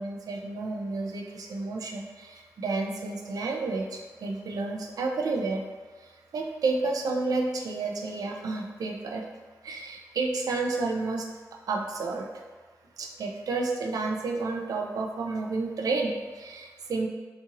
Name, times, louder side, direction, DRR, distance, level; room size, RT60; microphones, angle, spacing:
voice 1, 0.0-5.6 6.0-9.2 9.6-11.3 11.7-12.3 13.0-17.1, right 3 dB, 70° right, 1 dB, 0.4 m, -31 dB
2.6 x 2.5 x 2.8 m, 1.4 s
wide cardioid pair, 175°, 6 cm